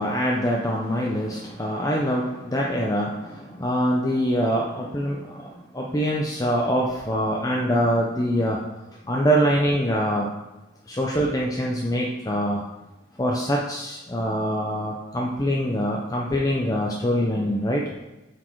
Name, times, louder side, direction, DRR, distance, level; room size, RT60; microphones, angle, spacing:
voice 1, 0.0-8.6 9.1-10.3 10.9-12.6 13.2-17.8, equal, 20° left, -2 dB, 0.6 m, -24 dB
7.7 x 4.3 x 4.6 m, 1.0 s
head